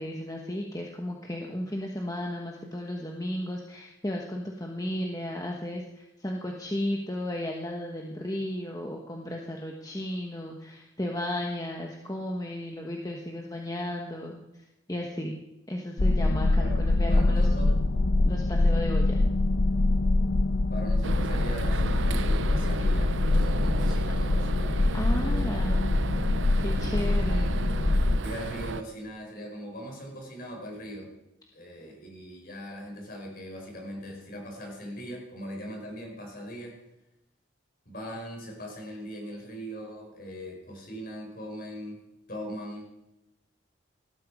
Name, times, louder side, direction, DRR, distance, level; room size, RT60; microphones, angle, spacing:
voice 1, 0.0-15.4 15.7-17.5 18.2-19.2 24.9-25.9 26.6-27.5, left 1 dB, 15° left, 1 dB, 1.2 m, -34 dB
sound 1, 16.0-28.2, left 2 dB, 85° left, 0.9 m, -24 dB
voice 2, 16.6-17.8 20.7-25.8 26.8-27.7 28.2-31.1 31.5-36.8 37.8-42.0 42.3-42.9, equal, 45° left, 0 dB, 5.1 m, -40 dB
sound 2, 21.0-28.8, right 4 dB, 70° right, 0.6 m, -34 dB
18.0 x 12.5 x 4.9 m, 0.92 s
head